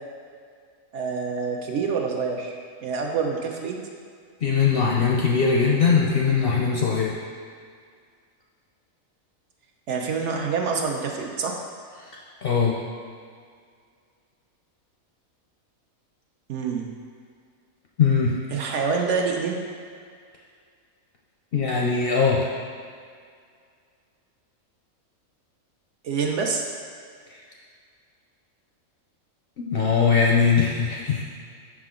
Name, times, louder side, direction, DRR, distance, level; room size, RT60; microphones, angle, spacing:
voice 1, 0.9-2.5 2.8-3.8 9.9-11.5 16.5-16.9 18.5-19.6 26.0-26.6, right 5 dB, 70° right, 1 dB, 0.8 m, -26 dB
voice 2, 4.4-7.1 12.4-12.7 18.0-18.4 21.5-22.4 27.3-27.4 29.6-31.2, left 5 dB, 60° left, -3 dB, 0.6 m, -21 dB
5.8 x 4.9 x 3.7 m, 2.1 s
omnidirectional pair, 1.5 m